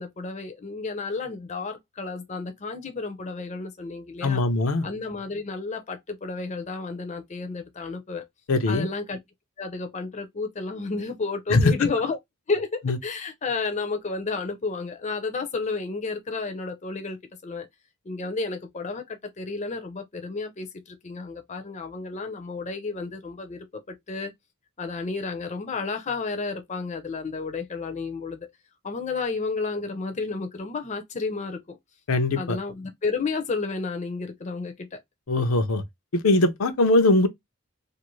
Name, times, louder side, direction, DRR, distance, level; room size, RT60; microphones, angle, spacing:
voice 1, 0.0-4.4 4.8-8.3 8.7-9.2 9.6-12.2 12.5-17.2 17.4-17.7 18.0-24.3 24.8-28.5 28.8-31.8 32.4-35.0, left 4 dB, 35° left, 0.5 m, -31 dB
voice 2, 4.2-4.9 8.5-8.9 11.5-11.9 12.9-13.0 32.1-32.6 35.3-35.8 36.1-37.3, left 2 dB, 80° left, 0.6 m, -21 dB
2.5 x 2.5 x 3.0 m
head